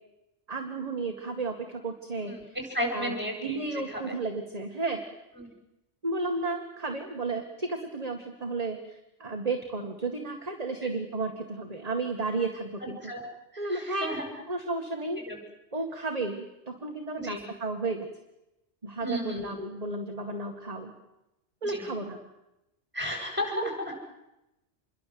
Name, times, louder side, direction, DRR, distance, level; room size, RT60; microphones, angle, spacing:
voice 1, 0.5-2.3 2.9-3.1 3.4-5.0 6.0-13.0 13.6-14.2 14.5-15.2 15.7-18.1 18.8-20.9 21.6-22.2 23.6-23.7, right 3 dB, 30° right, 3 dB, 2.1 m, -33 dB
voice 2, 2.3-3.6 3.9-4.1 5.4-5.5 10.8-10.9 12.8-13.2 13.5-14.2 15.3-15.4 17.2-17.4 19.0-19.5 21.6-21.8 22.9-23.9, equal, 10° right, 2 dB, 7.7 m, -34 dB
27.5 x 22.5 x 7.9 m, 0.93 s
omnidirectional pair, 1.2 m